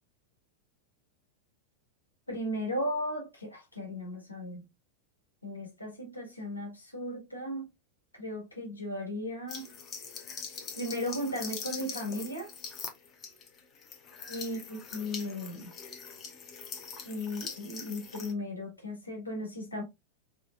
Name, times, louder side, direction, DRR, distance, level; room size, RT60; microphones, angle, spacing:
voice 1, 2.3-4.6 5.4-7.7 8.2-9.7 10.7-12.5 14.3-15.7 17.0-19.8, left 1 dB, 80° left, 1.5 m, -36 dB
sound 1, 9.5-18.3, left 6 dB, 30° left, 0.9 m, -43 dB
4.4 x 3.2 x 2.4 m
figure-of-eight pair, 90°, 0 cm